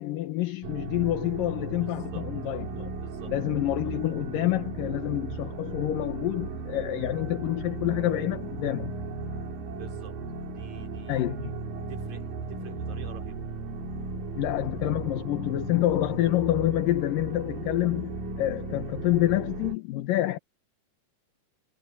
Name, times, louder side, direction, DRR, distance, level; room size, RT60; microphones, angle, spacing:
voice 1, 0.0-2.9 3.3-8.9 11.1-11.5 14.3-20.4, left 14 dB, 80° left, 2.8 m, -27 dB
sound 1, 0.6-19.8, right 3 dB, 90° right, 4.3 m, -36 dB
voice 2, 1.6-2.2 3.0-3.3 9.6-10.2 10.5-11.3 11.7-13.4, right 7 dB, 60° right, 4.7 m, -47 dB
omnidirectional pair, 3.9 m